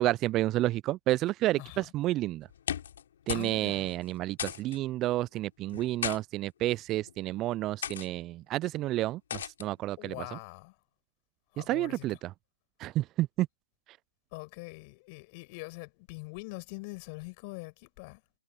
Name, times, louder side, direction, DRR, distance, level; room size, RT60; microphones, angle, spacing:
voice 1, 0.0-2.5 3.3-10.1 11.6-12.3 12.8-13.5, right 16 dB, 30° right, 0.4 m, -30 dB
sound 1, 2.5-3.0 3.3-3.6 3.8-3.9 4.4-4.8 5.7-6.2 7.0-7.2 7.8-8.1 9.3-9.7, left 9 dB, 60° left, 3.6 m, -35 dB
voice 2, 3.3-4.0 10.0-10.7 11.5-12.2 14.3-18.2, left 29 dB, 40° left, 6.8 m, -43 dB
figure-of-eight pair, 120°, 0 cm